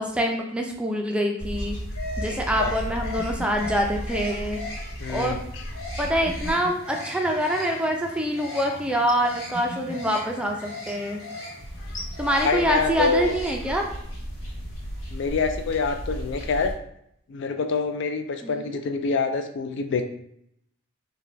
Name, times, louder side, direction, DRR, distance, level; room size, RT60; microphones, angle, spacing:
voice 1, 0.0-1.8 2.2-4.6 5.1-5.4 6.0-11.2 12.2-13.9 18.4-18.8, equal, 5° right, 1 dB, 0.4 m, -25 dB
sound 1, 1.4-16.7, equal, 75° left, 1.4 m, -35 dB
voice 2, 5.0-5.6 12.4-13.3 15.1-16.7 17.3-20.0, left 4 dB, 60° left, 7 dB, 0.3 m, -26 dB
4.0 x 2.2 x 3.2 m, 0.73 s
head